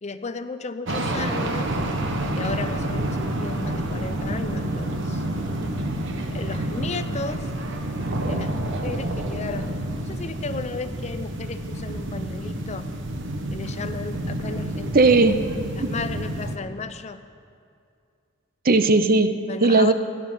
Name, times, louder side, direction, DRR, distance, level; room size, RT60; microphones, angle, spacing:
voice 1, 0.0-1.8 2.3-5.2 6.3-7.5 8.3-9.7 10.0-12.9 13.5-15.1 15.8-17.2 19.5-19.9, left 4 dB, 35° left, 11 dB, 0.5 m, -34 dB
sound 1, 0.9-16.6, right 1 dB, 60° right, 1.1 m, -29 dB
voice 2, 14.9-15.4 15.8-15.9 18.6-19.9, right 3 dB, 45° right, 10 dB, 0.6 m, -17 dB
17.0 x 11.5 x 5.5 m, 2.4 s
head